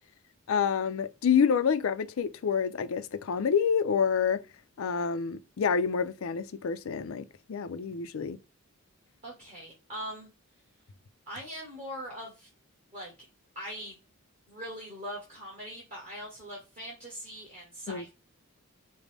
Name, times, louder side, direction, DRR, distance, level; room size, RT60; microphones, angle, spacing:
voice 1, 0.5-4.4 4.8-8.4 17.9-18.0, left 6 dB, 65° left, 0.4 m, -28 dB
voice 2, 9.2-10.3 11.3-12.5 12.9-13.1 13.5-13.9 14.5-18.1, equal, 30° right, 1.4 m, -41 dB
5.1 x 2.1 x 3.3 m
head